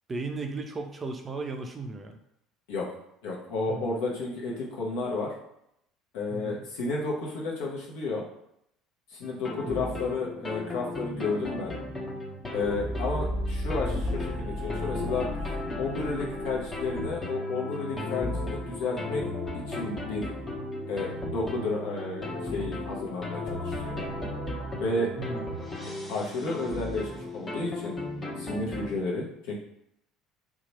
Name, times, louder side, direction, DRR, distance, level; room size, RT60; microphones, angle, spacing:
voice 1, 0.1-2.2 3.7-3.9 6.3-6.6 9.6-9.9 25.2-25.5, right 3 dB, 25° right, 4 dB, 0.5 m, -36 dB
voice 2, 3.2-5.3 6.1-8.2 9.1-11.8 12.5-15.3 15.8-19.2 19.7-20.3 20.9-24.0 24.8-25.1 26.1-28.0 28.4-29.5, left 3 dB, 60° left, -3 dB, 0.9 m, -32 dB
sound 1, 9.2-28.9, left 1 dB, 25° left, 0.8 m, -34 dB
2.9 x 2.3 x 4.1 m, 0.77 s
figure-of-eight pair, 60°, 0 cm